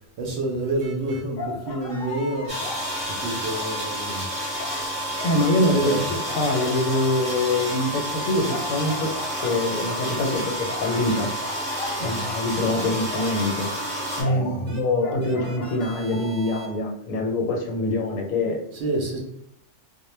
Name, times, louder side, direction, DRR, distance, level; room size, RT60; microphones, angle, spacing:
voice 1, 0.2-2.6 3.1-4.3 4.6-4.8 5.8-6.1 12.0-12.3 14.2-14.7 18.7-19.2, right 2 dB, 65° right, 0.7 m, -29 dB
sound 1, 0.8-1.2 1.8-2.6 3.0-3.8 4.3-4.8 5.2-5.6 6.0-6.9 7.2-8.7 9.5-14.3 14.7-14.8 15.2-16.7, right 3 dB, 85° right, 0.3 m, -44 dB
sound 2, 1.3-4.2 4.5-5.9 6.2-13.6 14.2-16.8, left 3 dB, 65° left, 0.6 m, -39 dB
sound 3, 2.5-14.2, equal, 5° right, 0.6 m, -30 dB
voice 2, 5.2-9.1 9.4-11.3 12.0-13.7 14.2-18.6, left 1 dB, 85° left, 1.0 m, -24 dB
2.1 x 2.1 x 3.1 m
omnidirectional pair, 1.4 m